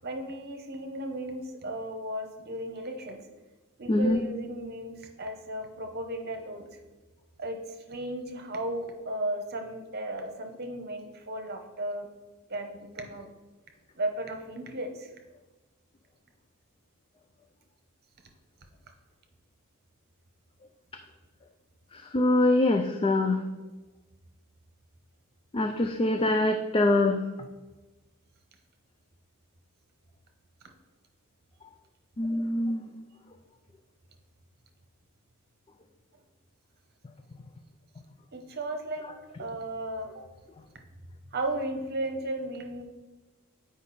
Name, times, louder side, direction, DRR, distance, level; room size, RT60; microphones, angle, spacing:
voice 1, 0.0-3.3 3.8-6.8 7.4-12.1 12.5-13.3 13.9-15.1 38.3-40.3 41.3-42.8, right 1 dB, 45° right, 4 dB, 1.0 m, -35 dB
voice 2, 3.9-4.2 21.9-23.4 25.5-27.2 32.2-32.9, left 2 dB, 25° left, 6 dB, 0.3 m, -24 dB
8.1 x 5.1 x 4.2 m, 1.2 s
head